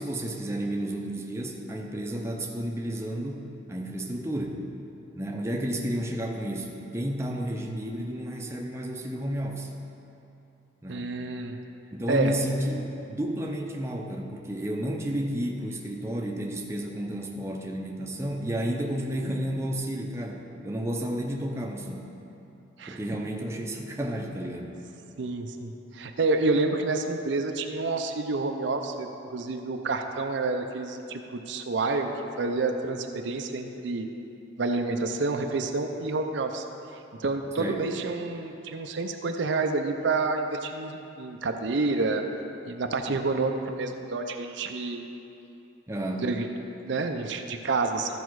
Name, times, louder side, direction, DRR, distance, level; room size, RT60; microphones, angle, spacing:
voice 1, 0.0-4.6 5.2-9.7 10.8-11.1 11.9-22.1 22.9-24.7 37.6-37.9 45.9-46.3, right 1 dB, 15° right, 0 dB, 0.6 m, -32 dB
voice 2, 10.9-11.6 12.1-12.3 22.8-23.0 25.2-32.1 32.4-34.1 34.6-36.6 37.2-42.2 42.7-45.0 46.2-48.2, right 3 dB, 70° right, 5 dB, 0.5 m, -29 dB
13.5 x 5.1 x 4.7 m, 2.9 s
head